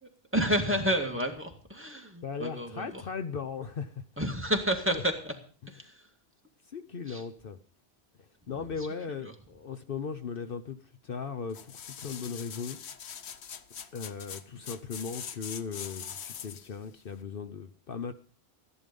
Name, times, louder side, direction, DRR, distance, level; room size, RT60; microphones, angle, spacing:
voice 1, 0.0-3.0 4.2-5.3 5.7-6.1 7.1-7.2 8.8-8.9 9.2-9.3, equal, 10° right, 3 dB, 2.1 m, -30 dB
voice 2, 2.2-4.0 6.7-7.6 8.2-10.8 11.0-12.8 13.9-18.1, left 5 dB, 60° left, 10 dB, 1.0 m, -38 dB
sound 1, 11.5-16.8 17.2-17.3, left 8 dB, 80° left, 1.1 m, -42 dB
14.0 x 11.0 x 5.3 m, 0.42 s
omnidirectional pair, 1.1 m